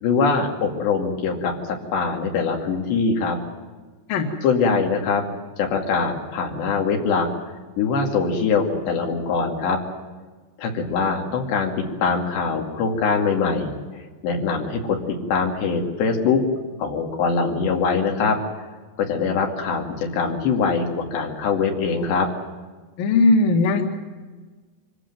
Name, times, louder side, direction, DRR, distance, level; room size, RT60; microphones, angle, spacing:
voice 1, 0.0-3.4 4.4-5.2 5.6-7.3 7.8-9.8 10.6-13.7 14.2-16.4 16.8-18.4 19.0-22.3, left 5 dB, 85° left, 1 dB, 4.6 m, -23 dB
voice 2, 23.0-23.8, left 3 dB, 60° left, 3 dB, 3.4 m, -18 dB
25.5 x 15.0 x 9.1 m, 1.4 s
omnidirectional pair, 4.8 m